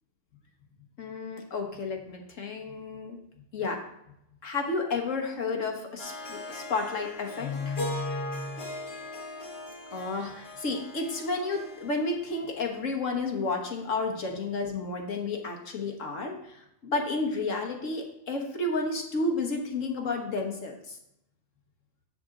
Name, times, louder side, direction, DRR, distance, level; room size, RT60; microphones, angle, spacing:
voice 1, 1.0-3.2 3.5-3.8 4.4-8.7 9.9-21.0, left 3 dB, 65° left, 2 dB, 1.6 m, -31 dB
Harp, 6.0-13.2, left 1 dB, 45° left, 1.8 m, -40 dB
7.4 x 6.9 x 3.8 m, 0.80 s
omnidirectional pair, 1.5 m